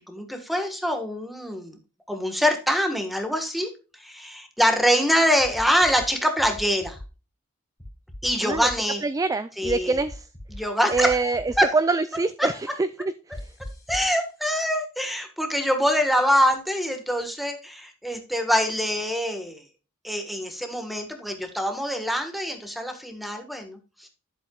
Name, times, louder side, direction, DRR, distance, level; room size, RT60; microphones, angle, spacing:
voice 1, 0.1-1.8 2.1-3.7 4.0-7.0 8.2-9.0 9.6-10.0 10.5-11.2 11.6-11.7 12.4-12.5 13.9-19.6 20.0-24.1, equal, ahead, 6 dB, 1.4 m, -24 dB
sound 1, 5.4-6.1 6.4-7.0 7.8-8.7 9.6-10.6 10.9-11.6 13.3-14.1, left 1 dB, 15° left, 2.8 m, -39 dB
voice 2, 9.0-10.3 10.9-13.4, right 3 dB, 15° right, 13 dB, 0.3 m, -25 dB
11.0 x 7.7 x 2.3 m, 0.33 s
head